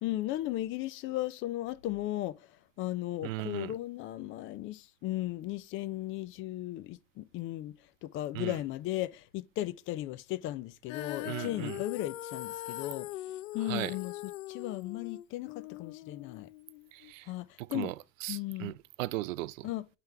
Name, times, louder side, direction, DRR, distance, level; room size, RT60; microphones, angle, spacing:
voice 1, 0.0-7.8 8.0-14.1 14.5-16.5 17.3-17.9 18.3-18.7 19.6-20.0, left 15 dB, 35° left, 0.4 m, -36 dB
voice 2, 3.2-3.7 8.3-8.6 11.2-11.8 13.6-13.9 16.9-17.3 17.6-17.9 18.2-19.7, right 17 dB, 75° right, 0.5 m, -37 dB
Female singing, 10.9-17.1, left 15 dB, 80° left, 0.7 m, -41 dB
9.0 x 3.5 x 3.3 m
hypercardioid pair, 115°, 39 cm